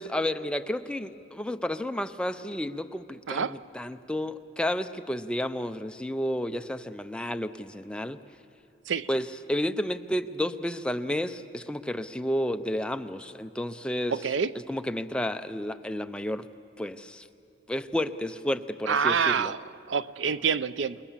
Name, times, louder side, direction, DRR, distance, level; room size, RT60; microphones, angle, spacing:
voice 1, 0.0-8.2 9.1-14.2 14.7-16.5 16.8-17.3 17.7-19.5, left 1 dB, 5° left, 9 dB, 0.5 m, -31 dB
voice 2, 14.1-14.5 18.9-19.6 19.9-21.0, right 6 dB, 80° right, 16 dB, 0.5 m, -26 dB
28.0 x 20.5 x 7.3 m, 2.7 s
head